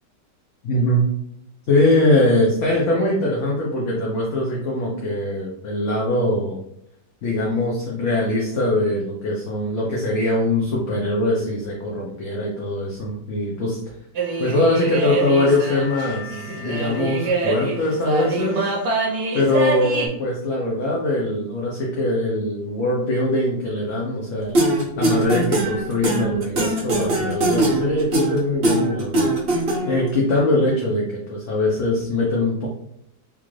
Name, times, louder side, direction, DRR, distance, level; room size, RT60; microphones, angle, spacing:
voice 1, 0.6-1.0 1.7-6.6 7.2-13.8 14.4-18.7 19.3-24.6 25.0-29.3 29.9-32.7, left 1 dB, 60° left, -3 dB, 0.8 m, -22 dB
sound 1, 14.2-20.1, right 3 dB, 70° right, 1.1 m, -25 dB
sound 2, 24.5-30.1, right 2 dB, 45° right, 0.8 m, -21 dB
3.5 x 2.5 x 3.1 m, 0.74 s
omnidirectional pair, 1.8 m